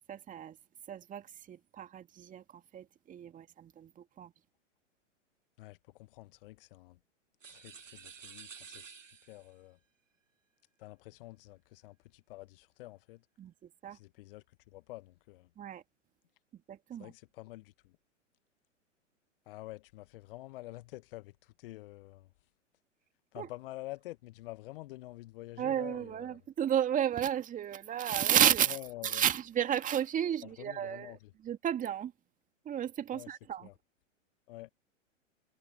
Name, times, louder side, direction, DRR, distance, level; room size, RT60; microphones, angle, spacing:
voice 1, 0.1-0.6 0.9-4.3 13.4-14.0 15.6-15.8 16.5-17.1 23.4-23.5 25.6-28.8 29.0-32.1 32.6-33.7, right 10 dB, 20° right, 2.3 m, -32 dB
voice 2, 5.6-7.0 7.4-9.8 10.8-13.2 13.9-15.5 17.0-18.0 19.4-22.3 23.3-26.4 28.7-29.2 30.4-31.3 33.1-33.3 33.6-33.7 34.5-34.7, left 18 dB, 45° left, 1.6 m, -48 dB
sound 1, 7.4-9.6, right 6 dB, 80° right, 1.3 m, -51 dB
figure-of-eight pair, 105°, 38 cm